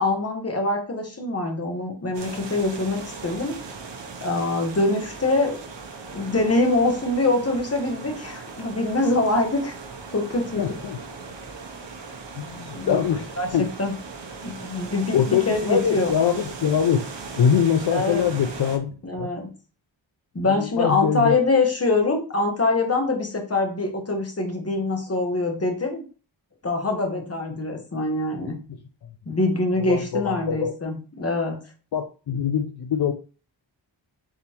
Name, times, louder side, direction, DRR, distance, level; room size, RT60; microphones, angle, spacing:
voice 1, 0.0-3.6 4.2-5.6 6.1-9.7 10.1-10.6 12.7-13.0 13.4-13.9 14.4-16.1 17.9-18.2 19.0-19.5 20.3-26.0 26.6-28.6 29.3-31.6, left 2 dB, 30° left, 3 dB, 1.1 m, -24 dB
sound 1, 2.1-18.8, right 4 dB, 70° right, 0.9 m, -38 dB
voice 2, 10.6-11.0 12.4-13.7 15.1-17.1 17.4-19.3 20.4-21.4 28.5-29.1 29.8-30.7 31.9-33.1, left 8 dB, 60° left, 6 dB, 0.5 m, -24 dB
3.9 x 3.8 x 2.9 m, 0.37 s
wide cardioid pair, 100°, 45 cm